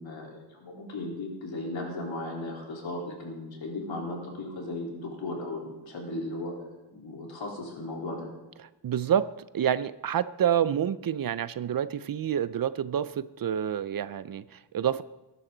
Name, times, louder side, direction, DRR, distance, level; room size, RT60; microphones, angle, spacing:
voice 1, 0.0-6.5 6.9-8.3, left 2 dB, 80° left, -2 dB, 3.9 m, -36 dB
voice 2, 8.8-9.3 9.5-15.0, right 9 dB, 50° right, 16 dB, 0.4 m, -28 dB
20.5 x 11.0 x 3.9 m, 1.1 s
wide cardioid pair, 145°, 45 cm